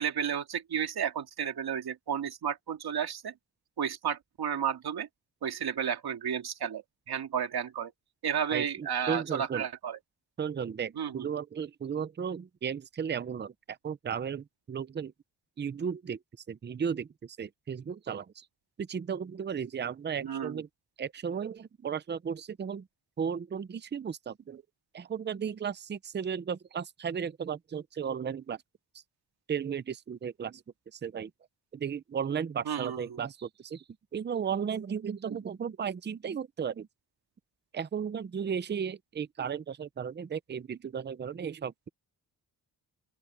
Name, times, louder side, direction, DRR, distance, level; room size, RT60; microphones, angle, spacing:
voice 1, 0.0-3.3 3.8-5.1 5.4-7.9 8.2-10.0 11.0-11.3 20.2-20.6 32.7-33.2, right 8 dB, 65° right, 2.6 m, -32 dB
voice 2, 8.5-9.6 10.4-15.1 15.6-16.2 16.5-18.4 18.8-20.7 21.0-22.9 23.2-24.6 24.9-28.6 29.5-30.6 30.9-31.3 31.7-33.8 34.1-36.9 37.7-41.9, right 7 dB, 25° right, 0.6 m, -35 dB
open air
wide cardioid pair, 150°, 41 cm